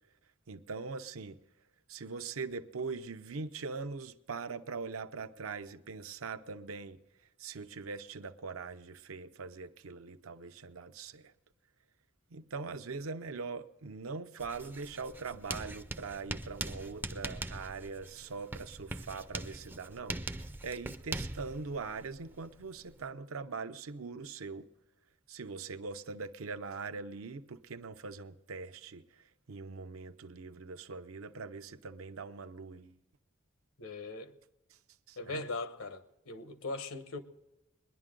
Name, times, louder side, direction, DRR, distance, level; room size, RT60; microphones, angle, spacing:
voice 1, 0.5-1.4 1.9-7.0 7.4-11.3 12.3-24.7 25.3-33.0 35.1-35.4, right 4 dB, 80° right, 0.6 m, -42 dB
Writing, 14.4-23.1, right 2 dB, 10° right, 0.3 m, -42 dB
voice 2, 33.8-34.4 35.2-37.2, left 3 dB, 85° left, 1.1 m, -40 dB
21.5 x 11.0 x 3.8 m
head